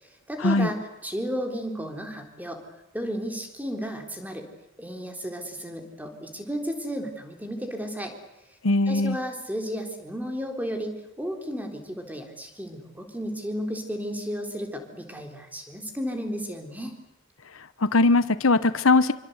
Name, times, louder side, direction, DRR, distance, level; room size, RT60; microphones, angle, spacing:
voice 1, 0.0-2.6 2.9-4.5 4.8-8.1 8.9-17.0, equal, 10° right, 4 dB, 3.8 m, -33 dB
voice 2, 8.6-9.2 17.8-19.1, left 3 dB, 90° left, 14 dB, 1.1 m, -20 dB
27.0 x 25.0 x 8.1 m, 0.93 s
head